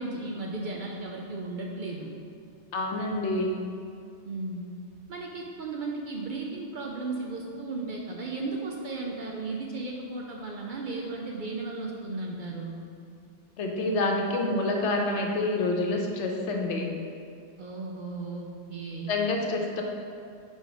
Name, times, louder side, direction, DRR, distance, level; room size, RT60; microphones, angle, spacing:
voice 1, 0.0-2.1 4.2-4.7 5.1-12.8 17.6-19.1, right 3 dB, 55° right, -1 dB, 0.6 m, -35 dB
voice 2, 2.7-3.6 13.6-16.9 19.1-19.8, left 2 dB, 80° left, 1 dB, 1.0 m, -27 dB
4.8 x 4.1 x 5.0 m, 2.4 s
omnidirectional pair, 1.2 m